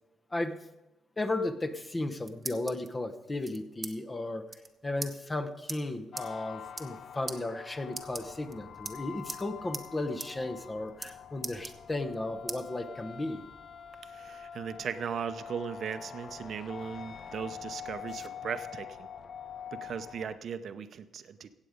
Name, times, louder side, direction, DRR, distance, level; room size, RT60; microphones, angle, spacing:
voice 1, 0.3-0.6 1.2-4.5 4.8-13.4, left 2 dB, 20° left, 8 dB, 1.0 m, -35 dB
sound 1, 1.9-2.9 3.4-3.9 4.2-4.3 4.5-4.7 5.0-5.1 5.7-5.8 6.2-6.3 6.7-7.0 7.3-7.4 7.9-8.5 8.9-9.4 9.7-9.9 10.2-10.3 10.6-11.1 11.4-12.1 12.5-12.6 13.1-14.0, right 3 dB, 25° right, 1.0 m, -40 dB
sound 2, 6.1-20.4, left 8 dB, 55° left, 0.5 m, -45 dB
voice 2, 14.0-19.1 19.7-21.6, right 7 dB, 60° right, 11 dB, 0.7 m, -38 dB
15.5 x 8.2 x 5.2 m, 0.98 s
cardioid pair, 90°, 0 cm